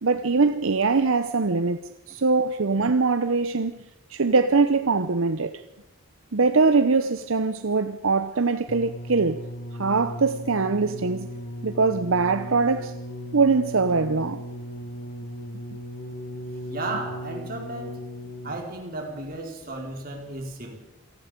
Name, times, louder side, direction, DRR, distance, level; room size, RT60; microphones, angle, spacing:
voice 1, 0.0-1.8 2.1-3.7 4.1-5.6 6.3-9.5 9.8-11.3 11.6-13.0 13.3-14.4, right 4 dB, 70° right, 0.8 m, -22 dB
sound 1, 8.7-18.8 19.6-19.7, equal, 60° left, 1.7 m, -37 dB
voice 2, 16.7-18.0 18.4-20.8, right 2 dB, 40° right, 4.7 m, -34 dB
28.0 x 18.5 x 5.3 m
head